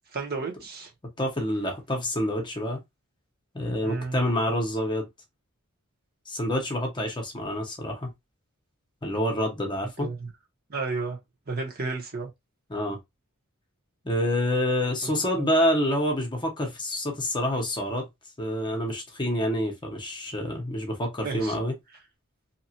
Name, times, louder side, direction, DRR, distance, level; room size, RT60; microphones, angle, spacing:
voice 1, 0.1-0.9 3.8-4.2 10.0-10.3 10.7-11.2 11.5-12.3 15.0-15.5 21.2-21.5, right 3 dB, 45° right, 1.0 m, -32 dB
voice 2, 1.2-2.8 3.5-5.1 6.3-8.1 9.0-10.1 12.7-13.0 14.0-18.1 18.4-21.7, left 1 dB, 20° left, 0.8 m, -27 dB
2.8 x 2.3 x 2.8 m
head